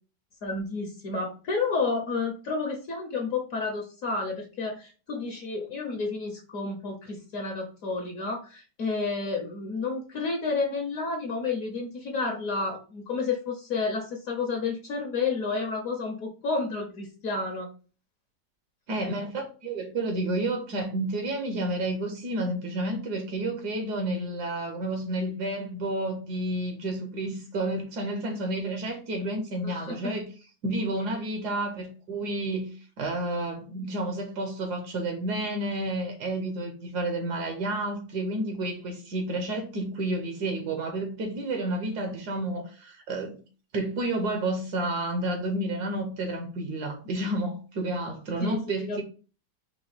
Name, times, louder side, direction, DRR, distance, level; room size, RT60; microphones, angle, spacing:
voice 1, 0.4-17.7 29.6-30.1 48.4-48.6 48.9-49.0, left 4 dB, 60° left, 1.1 m, -30 dB
voice 2, 18.9-30.3 30.6-43.4 43.7-49.0, right 1 dB, 70° right, 1.4 m, -30 dB
4.8 x 2.3 x 4.2 m
omnidirectional pair, 1.9 m